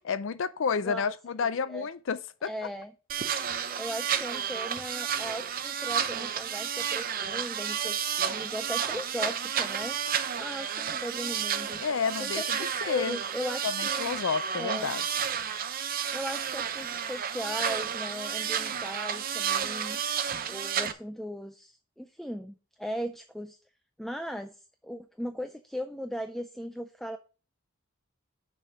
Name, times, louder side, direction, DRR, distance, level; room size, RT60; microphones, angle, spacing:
voice 1, 0.0-2.5 11.8-13.2 13.6-15.0, left 6 dB, 65° left, 0.4 m, -30 dB
voice 2, 1.4-1.9 2.4-2.9 3.8-10.0 10.4-11.8 12.2-14.0 14.6-14.9 16.1-20.0 20.5-23.6 24.0-27.2, equal, ahead, 0.3 m, -38 dB
sound 1, 3.1-20.9, right 8 dB, 40° right, 0.6 m, -31 dB
6.7 x 5.0 x 5.9 m
head